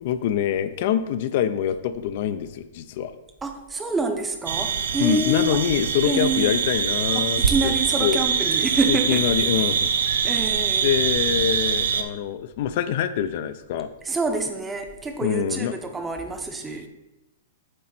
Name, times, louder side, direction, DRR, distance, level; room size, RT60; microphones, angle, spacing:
voice 1, 0.0-3.1 5.0-7.7 8.0-8.2 8.9-9.9 10.8-13.9 15.2-15.7, left 10 dB, 55° left, 11 dB, 0.4 m, -25 dB
voice 2, 3.4-5.6 6.0-6.6 7.1-9.3 10.2-10.9 14.0-16.9, right 3 dB, 10° right, 5 dB, 0.7 m, -27 dB
sound 1, 4.5-12.0, right 6 dB, 75° right, 0.6 m, -24 dB
7.6 x 4.2 x 4.3 m, 0.98 s
hypercardioid pair, 145°, 0 cm